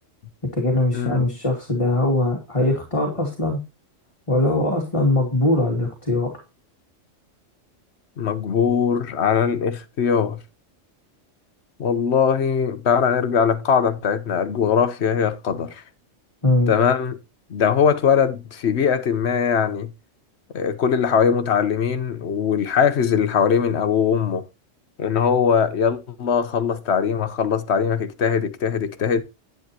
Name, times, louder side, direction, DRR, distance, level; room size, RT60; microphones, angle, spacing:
voice 1, 0.5-3.6 4.3-6.3 16.4-16.7, left 2 dB, 25° left, 2.5 m, -21 dB
voice 2, 8.2-10.4 11.8-15.8 16.7-17.2 17.5-19.9 20.5-24.4 25.0-29.2, left 7 dB, 60° left, 1.2 m, -21 dB
10.5 x 9.4 x 2.8 m
omnidirectional pair, 1.3 m